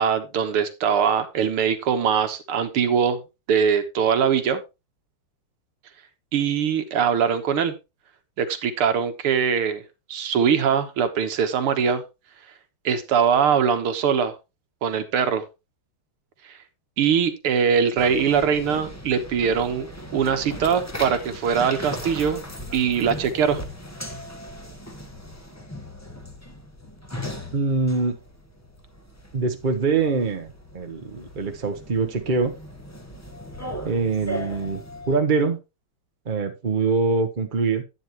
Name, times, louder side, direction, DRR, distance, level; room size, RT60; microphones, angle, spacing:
voice 1, 0.0-3.2 3.5-4.6 6.3-7.7 8.4-9.8 10.1-12.0 12.8-14.4 14.8-15.5 17.0-22.4 22.7-23.6, right 7 dB, 90° right, 9 dB, 2.2 m, -22 dB
sound 1, 18.0-35.2, equal, 10° left, 0.8 m, -38 dB
voice 2, 27.5-28.1 29.3-32.5 33.8-35.6 36.3-37.8, right 4 dB, 40° right, 5 dB, 0.7 m, -24 dB
11.0 x 9.1 x 3.0 m, 0.25 s
omnidirectional pair, 2.4 m